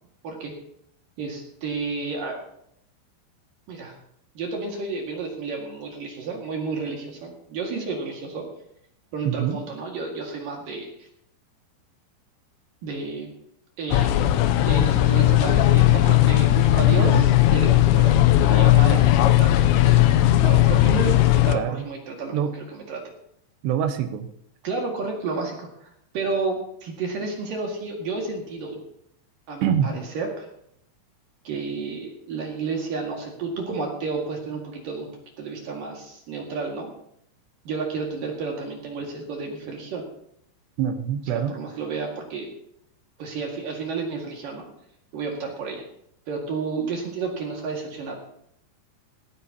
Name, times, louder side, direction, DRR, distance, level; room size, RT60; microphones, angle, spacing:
voice 1, 1.2-2.4 3.7-3.9 4.3-8.5 9.1-11.1 12.8-13.3 13.8-14.1 14.7-20.0 20.4-23.1 24.6-28.8 29.5-30.5 31.4-35.1 35.4-36.9 37.6-40.1 41.3-42.5 43.2-44.7 45.1-45.8 46.3-48.1, right 4 dB, 55° right, 0 dB, 3.2 m, -31 dB
voice 2, 9.2-9.6 17.0-17.2 21.5-21.8 22.3-22.5 23.6-24.3 29.6-29.9 40.8-41.6, right 9 dB, 75° right, 6 dB, 3.0 m, -25 dB
sound 1, 13.9-21.5, left 14 dB, 80° left, 2.6 m, -17 dB
18.5 x 15.5 x 2.9 m, 0.72 s
omnidirectional pair, 5.5 m